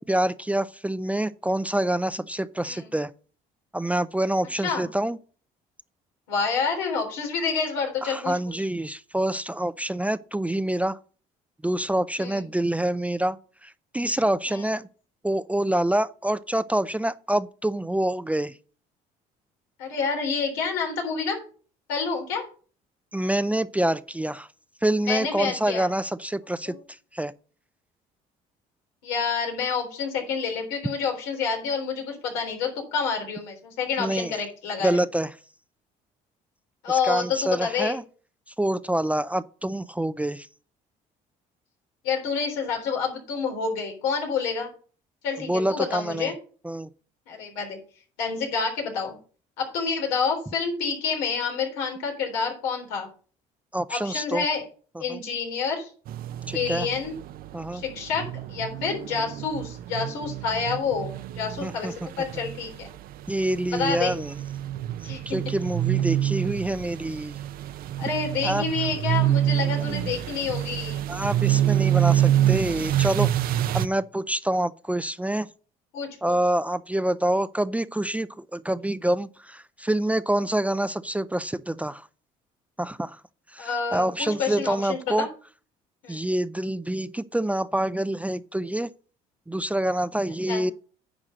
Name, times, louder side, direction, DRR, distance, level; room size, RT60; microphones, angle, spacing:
voice 1, 0.0-3.1 3.7-5.2 8.0-11.0 11.6-14.9 15.2-18.5 23.1-24.5 24.8-26.7 27.1-27.3 34.0-34.3 34.8-35.3 36.9-38.0 38.6-40.5 45.4-46.3 46.6-46.9 53.7-54.5 55.1-55.2 56.5-56.9 57.5-57.8 61.6-61.9 63.3-64.3 65.0-67.4 68.4-68.7 71.1-75.5 76.2-82.1 82.8-83.2 83.5-85.3 86.1-88.9 89.5-90.7, right 1 dB, 10° right, 0.4 m, -26 dB
voice 2, 6.3-8.5 12.2-12.4 14.5-14.7 19.8-21.4 21.9-22.5 25.1-25.9 26.7-26.8 29.0-35.0 36.8-38.0 42.0-44.7 45.2-46.3 47.3-47.8 48.2-49.2 49.6-53.1 53.9-54.6 55.0-55.9 56.5-57.1 57.7-62.9 63.7-64.1 65.0-65.4 68.0-71.1 75.9-76.4 83.6-85.3 86.0-86.3 90.5-90.7, left 5 dB, 90° left, 3.5 m, -28 dB
sound 1, 56.1-73.9, right 12 dB, 60° right, 0.6 m, -27 dB
9.9 x 4.8 x 6.4 m
supercardioid pair, 85°, 17 cm